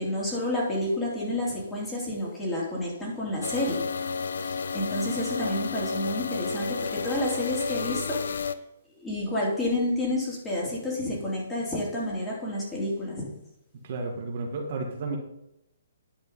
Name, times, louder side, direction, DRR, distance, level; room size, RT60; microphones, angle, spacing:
voice 1, 0.0-3.9 4.4-8.2 9.0-13.3, left 1 dB, 10° left, -5 dB, 3.4 m, -29 dB
sound 1, 3.4-8.5, left 5 dB, 75° left, 0.6 m, -32 dB
voice 2, 13.8-15.2, right 3 dB, 50° right, 1 dB, 1.7 m, -32 dB
10.5 x 5.4 x 5.5 m, 0.82 s
hypercardioid pair, 145°, 0 cm